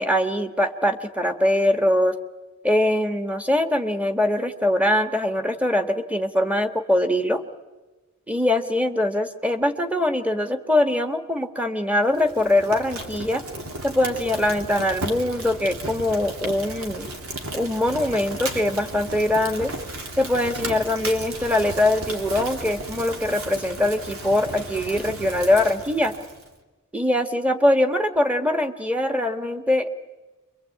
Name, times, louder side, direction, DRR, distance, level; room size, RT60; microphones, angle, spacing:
voice 1, 0.0-2.1 2.6-7.4 8.3-13.4 13.8-17.1 17.5-19.7 20.2-26.1 26.9-29.9, left 1 dB, 5° right, 8 dB, 1.5 m, -22 dB
Fire, 12.1-26.5, right 1 dB, 85° right, 3.0 m, -35 dB
28.5 x 23.0 x 8.6 m, 1.2 s
head